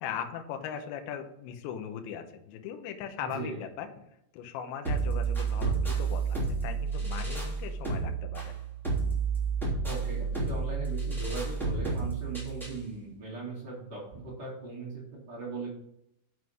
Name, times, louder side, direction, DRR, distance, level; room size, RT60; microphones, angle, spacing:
voice 1, 0.0-3.9 4.3-8.6, left 8 dB, 80° left, 6 dB, 2.8 m, -39 dB
voice 2, 3.2-3.6 9.8-15.7, right 3 dB, 40° right, -6 dB, 1.6 m, -39 dB
sound 1, 4.8-12.8, right 5 dB, ahead, 1.2 m, -31 dB
7.7 x 5.7 x 6.5 m, 0.77 s
omnidirectional pair, 6.0 m